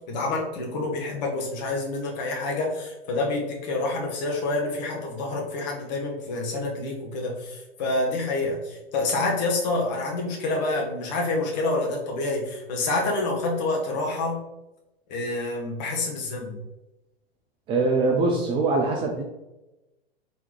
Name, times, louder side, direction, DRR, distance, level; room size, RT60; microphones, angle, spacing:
voice 1, 0.1-14.4 15.1-16.6, left 2 dB, 45° left, -1 dB, 1.4 m, -27 dB
voice 2, 17.7-19.2, right 3 dB, 15° right, 1 dB, 0.4 m, -23 dB
4.7 x 3.4 x 3.2 m, 0.97 s
figure-of-eight pair, 100°, 31 cm